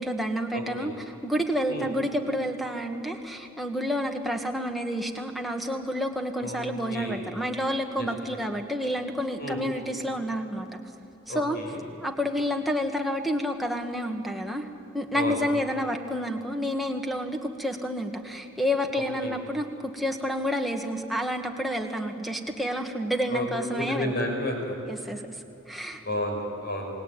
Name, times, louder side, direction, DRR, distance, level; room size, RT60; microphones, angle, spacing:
voice 1, 0.0-10.8 11.3-11.6 12.0-24.1 24.9-25.2 25.7-26.0, equal, ahead, 2 dB, 1.8 m, -29 dB
voice 2, 0.5-0.9 1.7-1.9 6.4-7.3 8.0-8.1 9.4-9.6 11.3-11.8 15.1-15.4 18.9-19.3 23.3-23.5 23.8-24.8 26.0-26.9, left 1 dB, 50° left, 2 dB, 5.8 m, -32 dB
27.5 x 20.0 x 9.2 m, 2.9 s
head